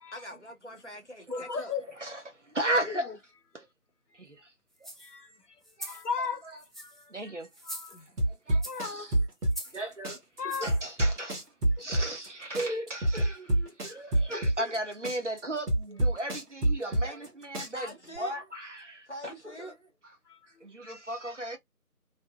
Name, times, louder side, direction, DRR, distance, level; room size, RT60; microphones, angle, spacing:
voice 1, 0.1-1.7 17.0-17.2 17.7-18.4 19.1-19.8, equal, 50° left, 0.9 m, -43 dB
voice 2, 1.3-1.8 2.8-3.2 5.0-7.4 7.6-8.1 8.6-9.1 10.4-10.7 11.8-12.1 17.6-17.7 20.3-20.7, left 5 dB, 90° left, 0.8 m, -38 dB
voice 3, 2.5-3.1 4.2-4.4 5.8-6.0 7.1-7.5 8.3-9.1 9.7-10.2 10.4-11.4 11.8-17.9 18.2-19.3 20.6-21.6, right 1 dB, 50° right, 0.8 m, -35 dB
sound 1, 4.8-5.1 5.6-6.1 6.6-7.1 7.5-8.2 8.6-8.9 9.5-9.8 10.5-10.8 11.4-11.5, equal, ahead, 0.4 m, -43 dB
sound 2, 8.2-9.8 10.0-12.3 12.5-14.8 15.0-17.3 17.5-18.2, right 1 dB, 80° right, 1.1 m, -27 dB
2.6 x 2.1 x 2.3 m
figure-of-eight pair, 175°, 46 cm